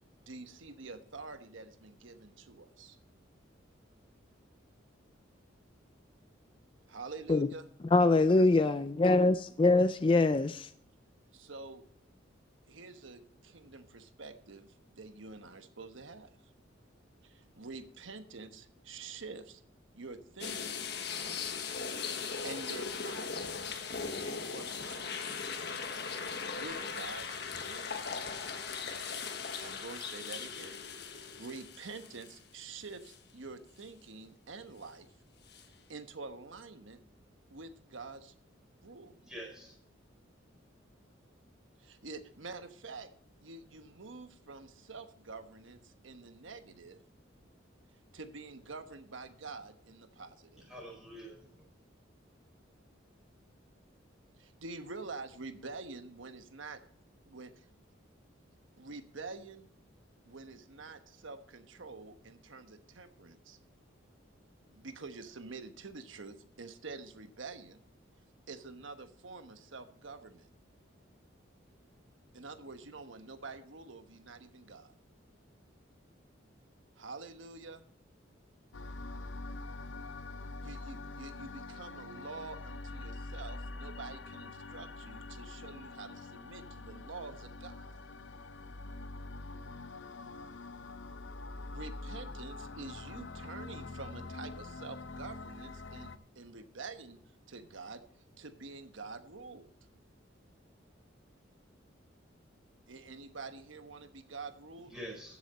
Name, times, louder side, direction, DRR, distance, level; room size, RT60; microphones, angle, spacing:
voice 1, 0.3-3.0 6.9-7.7 11.3-11.8 12.7-16.3 17.2-19.6 19.9-20.9 22.4-23.4 24.2-25.4 26.6-28.0 29.6-30.8 31.1-35.1 35.9-37.0 37.5-38.3 38.8-39.1 41.8-43.1 43.4-47.0 48.1-50.7 54.4-56.8 57.2-57.7 58.8-59.7 60.2-63.6 64.7-67.8 68.5-70.5 72.3-74.9 77.0-77.8 80.6-88.0 91.7-97.2 97.5-98.0 98.4-99.7 102.9-104.9, right 3 dB, 75° right, 9 dB, 1.2 m, -47 dB
voice 2, 7.9-10.7, left 2 dB, 25° left, 11 dB, 0.4 m, -24 dB
sound 1, 20.4-32.6 33.0-33.2 35.5-35.6, left 5 dB, 55° left, 1.3 m, -39 dB
voice 3, 39.1-39.8 50.5-51.6 104.9-105.4, equal, 5° right, -2 dB, 4.7 m, -46 dB
sound 2, 78.7-96.2, left 2 dB, 70° left, 0.7 m, -45 dB
14.5 x 7.3 x 4.2 m, 0.64 s
head